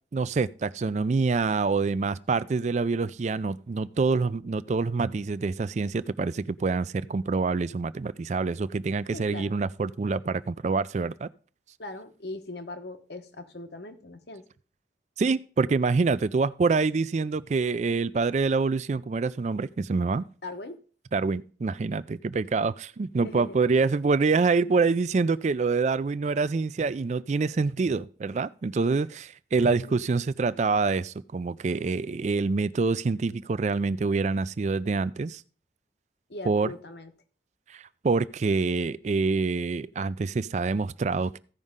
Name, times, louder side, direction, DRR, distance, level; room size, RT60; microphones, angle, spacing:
voice 1, 0.1-11.3 15.2-20.2 21.1-35.4 36.5-36.7 37.7-41.4, right 4 dB, 40° right, 0.3 m, -26 dB
voice 2, 9.1-9.6 11.8-14.4 20.4-20.8 23.2-23.6 29.6-29.9 36.3-37.1, left 2 dB, 65° left, 1.0 m, -40 dB
15.5 x 5.3 x 3.6 m
head